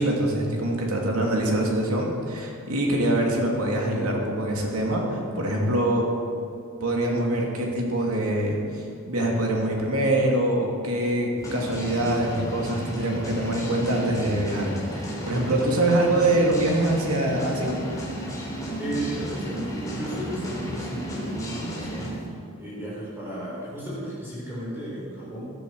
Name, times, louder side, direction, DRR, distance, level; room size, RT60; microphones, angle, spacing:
voice 1, 0.0-6.1 6.8-17.7, right 1 dB, 90° right, -1 dB, 2.8 m, -24 dB
sound 1, 11.4-22.2, equal, 15° left, 3.3 m, -33 dB
voice 2, 18.8-25.5, right 1 dB, 10° right, -8 dB, 4.3 m, -34 dB
15.0 x 13.0 x 4.9 m, 2.5 s
head